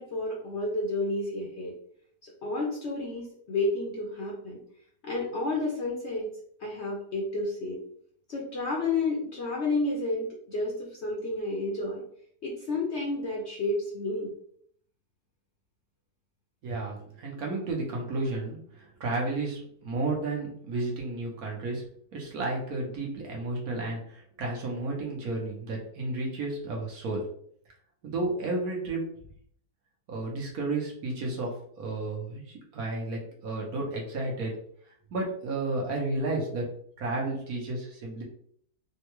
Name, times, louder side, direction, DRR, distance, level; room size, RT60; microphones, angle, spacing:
voice 1, 0.0-1.8 2.2-4.6 5.0-6.3 6.6-7.8 8.3-12.0 12.4-14.3, left 2 dB, 55° left, -3 dB, 0.8 m, -31 dB
voice 2, 16.6-21.8 22.1-27.2 28.0-29.1 30.1-34.5 35.1-36.7 37.0-38.2, right 2 dB, 65° right, -1 dB, 1.2 m, -32 dB
3.7 x 2.2 x 2.9 m, 0.63 s
omnidirectional pair, 1.7 m